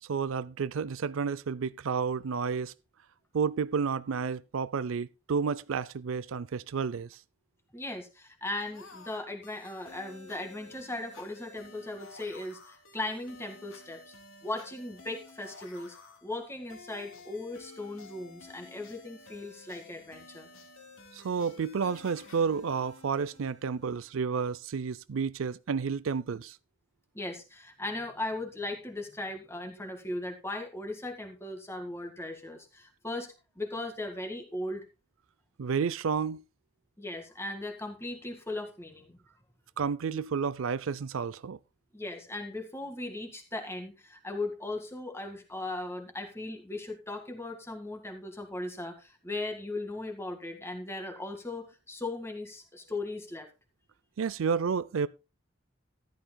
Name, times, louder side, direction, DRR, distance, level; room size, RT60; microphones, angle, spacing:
voice 1, 0.1-2.7 3.3-7.2 21.1-26.6 35.6-36.4 39.8-41.6 54.2-55.1, right 6 dB, 80° right, 0.5 m, -31 dB
voice 2, 7.7-14.1 14.4-20.5 27.1-34.8 37.0-39.2 41.9-53.5, left 2 dB, 10° left, 1.8 m, -38 dB
sound 1, 8.6-24.1, left 3 dB, 85° left, 2.9 m, -52 dB
14.0 x 11.5 x 2.2 m
head